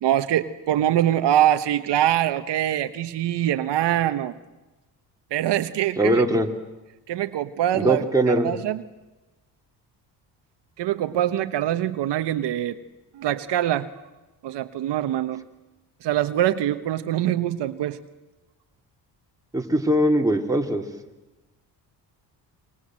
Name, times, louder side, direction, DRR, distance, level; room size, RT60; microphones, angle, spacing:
voice 1, 0.0-4.3 5.3-6.2 7.1-8.8 10.8-12.8 13.1-13.9 14.4-15.4 16.0-18.0, right 12 dB, 75° right, 9 dB, 1.2 m, -24 dB
voice 2, 6.0-6.5 7.7-8.5 19.5-20.8, right 1 dB, 10° right, 1 dB, 3.0 m, -21 dB
28.5 x 24.0 x 7.6 m, 1.1 s
cardioid pair, 100°, 42 cm